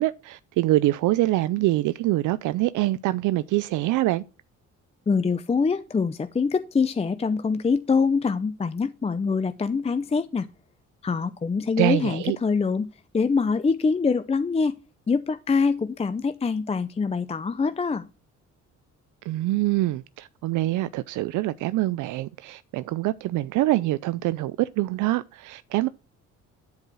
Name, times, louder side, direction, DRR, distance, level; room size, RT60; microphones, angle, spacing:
voice 1, 0.0-4.2 11.8-12.4 19.3-25.9, right 16 dB, 80° right, 0.5 m, -25 dB
voice 2, 5.1-10.5 11.0-12.9 13.1-14.8 15.1-18.1, left 5 dB, 20° left, 0.5 m, -24 dB
10.5 x 4.8 x 6.2 m
cardioid pair, 90°, 30 cm